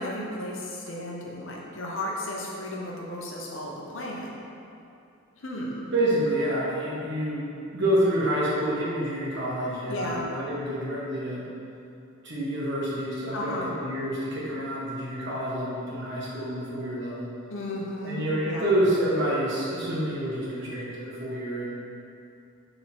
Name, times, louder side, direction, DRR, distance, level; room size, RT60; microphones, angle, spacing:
voice 1, 0.0-4.4 5.4-5.9 9.9-10.2 13.3-13.7 17.5-18.7, left 1 dB, 60° left, -3 dB, 0.9 m, -34 dB
voice 2, 5.9-7.4 7.7-11.4 12.2-17.3 18.0-21.7, right 1 dB, 55° right, -6 dB, 1.4 m, -28 dB
6.2 x 3.9 x 4.4 m, 2.6 s
head